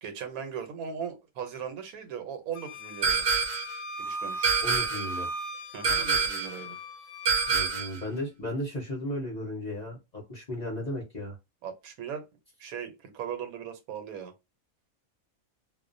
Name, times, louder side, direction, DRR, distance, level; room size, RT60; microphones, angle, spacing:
voice 1, 0.0-3.3 4.0-4.6 5.7-6.8 11.6-12.2 12.6-14.3, right 7 dB, 85° right, 1.1 m, -38 dB
Wind instrument woodwind instrument, 2.5-7.8, equal, 80° left, 1.1 m, -38 dB
sound 1, 3.0-3.8 4.4-5.2 5.8-6.6 7.3-8.0, right 5 dB, 70° right, 0.9 m, -26 dB
voice 2, 4.6-5.3 7.5-11.4, left 1 dB, 40° left, 0.6 m, -35 dB
2.4 x 2.0 x 2.5 m
omnidirectional pair, 1.5 m